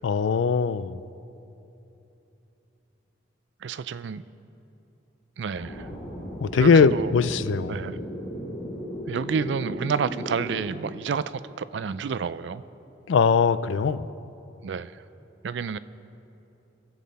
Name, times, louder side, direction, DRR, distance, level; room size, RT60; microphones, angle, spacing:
voice 1, 0.0-1.0 6.4-7.8 13.1-14.1, left 5 dB, 90° left, 0.4 m, -21 dB
voice 2, 3.6-4.2 5.4-5.9 6.5-7.1 7.7-8.0 9.1-12.6 14.6-14.9 15.4-15.8, right 6 dB, 75° right, 0.4 m, -29 dB
sound 1, 5.5-10.7, equal, 50° left, 2.8 m, -36 dB
22.5 x 7.6 x 4.1 m
head